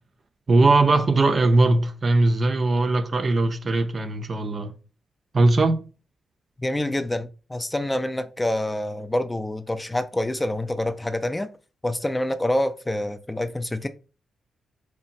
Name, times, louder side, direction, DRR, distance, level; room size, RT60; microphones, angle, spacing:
voice 1, 0.5-4.7 5.3-5.8, right 2 dB, 45° right, 0.4 m, -20 dB
voice 2, 6.6-11.5 11.8-13.9, left 1 dB, 15° left, 0.3 m, -26 dB
2.8 x 2.1 x 2.6 m
hypercardioid pair, 45°, 0 cm